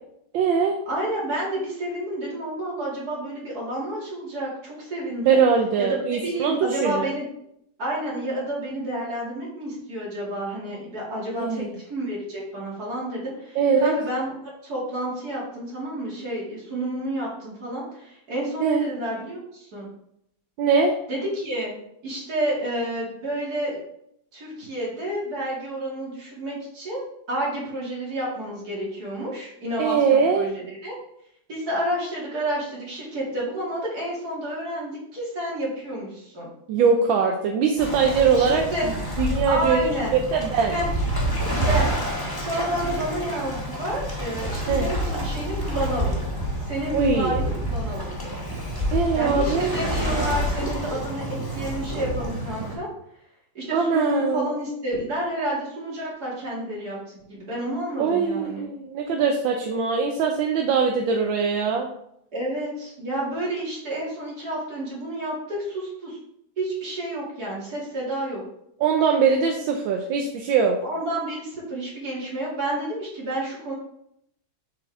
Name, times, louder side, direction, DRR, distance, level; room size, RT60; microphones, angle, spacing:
voice 1, 0.3-0.8 5.2-7.1 11.3-11.7 13.5-14.0 18.6-18.9 20.6-20.9 29.8-30.5 36.7-38.9 39.2-40.7 44.7-44.9 46.9-47.4 48.9-49.7 53.7-54.5 58.0-61.9 68.8-70.8, right 5 dB, 80° right, 3 dB, 1.4 m, -22 dB
voice 2, 0.9-5.4 5.8-7.2 7.8-19.9 21.1-21.7 22.0-23.8 24.3-31.0 31.5-36.5 38.4-38.9 39.4-40.1 40.7-40.9 41.6-41.9 42.4-46.1 46.7-48.0 49.1-52.9 53.5-58.7 62.3-66.2 66.6-68.4 70.8-73.8, right 1 dB, 50° right, -5 dB, 3.0 m, -30 dB
Waves surf, 37.8-52.8, equal, 10° left, 1.3 m, -28 dB
7.3 x 5.3 x 3.6 m, 0.75 s
omnidirectional pair, 2.2 m